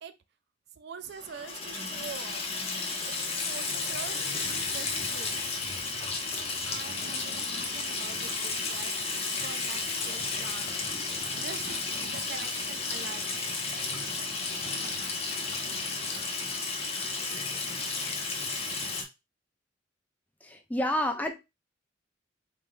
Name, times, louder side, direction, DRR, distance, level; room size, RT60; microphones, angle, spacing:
voice 1, 0.8-2.4 3.0-3.2 3.5-5.4 6.4-10.8 11.4-13.3, right 6 dB, 60° right, 0.4 m, -44 dB
Water tap faucet / Sink (filling or washing), 1.1-19.0, left 3 dB, 30° left, 0.9 m, -33 dB
voice 2, 20.4-21.3, left 1 dB, 10° left, 0.5 m, -29 dB
4.2 x 3.6 x 2.6 m
head